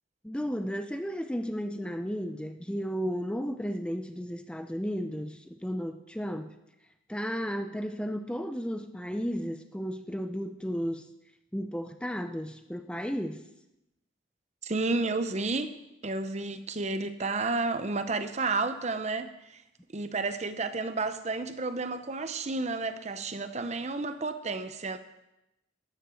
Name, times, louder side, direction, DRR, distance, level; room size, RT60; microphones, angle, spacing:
voice 1, 0.2-6.5 7.1-11.1 11.5-13.4, equal, 5° left, 7 dB, 0.6 m, -34 dB
voice 2, 14.6-15.8 16.0-19.6 19.9-25.0, right 3 dB, 35° right, 10 dB, 0.7 m, -31 dB
13.5 x 10.0 x 6.3 m, 0.91 s
head